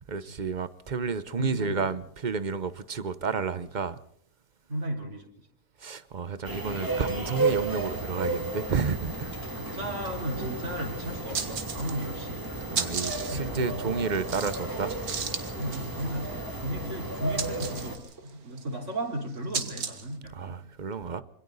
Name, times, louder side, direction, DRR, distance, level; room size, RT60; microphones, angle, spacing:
voice 1, 0.1-4.0 5.8-9.3 12.6-15.0 20.3-21.2, right 5 dB, 35° right, 0.9 m, -31 dB
voice 2, 1.4-1.8 4.7-5.3 9.5-12.9 13.3-14.0 15.5-20.6, right 1 dB, 55° right, 4.3 m, -35 dB
sound 1, 6.4-18.0, right 2 dB, 15° right, 2.5 m, -33 dB
sound 2, 7.1-8.8 9.1-12.2, left 1 dB, 35° left, 2.9 m, -51 dB
sound 3, 10.3-10.4 10.7-10.8 11.2-12.2 12.4-20.2, right 6 dB, 85° right, 2.0 m, -36 dB
26.5 x 25.0 x 4.1 m
omnidirectional pair, 1.5 m